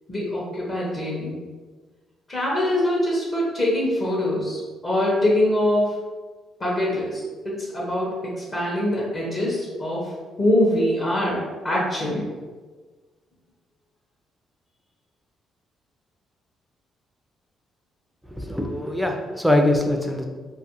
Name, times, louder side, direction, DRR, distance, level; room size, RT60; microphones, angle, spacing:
voice 1, 0.1-1.4 2.3-6.0 6.6-10.1 10.4-12.3, left 1 dB, 35° left, -5 dB, 0.7 m, -23 dB
voice 2, 18.4-20.2, left 1 dB, ahead, 2 dB, 0.4 m, -22 dB
2.6 x 2.4 x 2.8 m, 1.4 s
cardioid pair, 90°, 0 cm